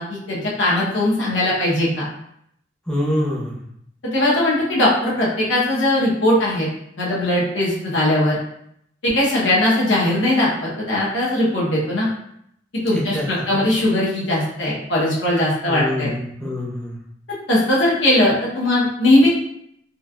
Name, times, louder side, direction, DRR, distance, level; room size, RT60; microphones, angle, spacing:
voice 1, 0.0-2.0 4.1-6.7 7.0-8.4 9.0-12.1 12.8-16.1 17.5-19.3, left 1 dB, 85° left, -5 dB, 0.9 m, -19 dB
voice 2, 2.9-3.6 12.9-13.6 15.7-17.0, left 1 dB, 5° left, -4 dB, 0.5 m, -25 dB
3.1 x 2.3 x 2.3 m, 0.73 s
head